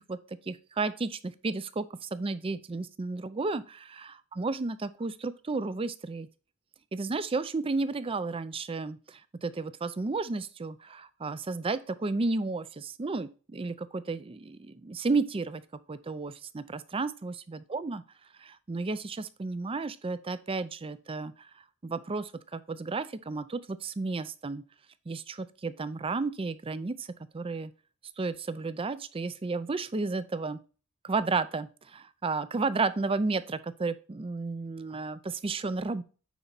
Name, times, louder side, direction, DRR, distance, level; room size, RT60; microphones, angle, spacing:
voice 1, 0.0-6.3 6.9-15.6 15.9-18.0 18.4-21.5 21.8-24.6 25.1-27.7 28.2-30.6 31.0-36.0, right 3 dB, 25° right, 14 dB, 0.4 m, -33 dB
9.2 x 4.2 x 4.0 m, 0.36 s
head